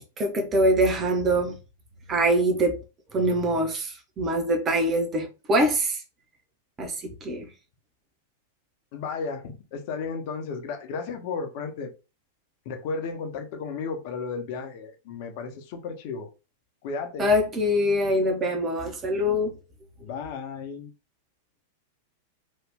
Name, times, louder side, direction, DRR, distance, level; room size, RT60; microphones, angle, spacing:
voice 1, 0.2-1.6 2.1-2.8 3.1-6.0 6.8-7.5 17.2-19.6, equal, 25° right, 1.0 m, -24 dB
voice 2, 8.9-11.9 12.6-16.3 16.8-17.3 20.0-20.9, left 5 dB, 45° left, 0.8 m, -34 dB
3.0 x 2.4 x 3.6 m
figure-of-eight pair, 95°, 0 cm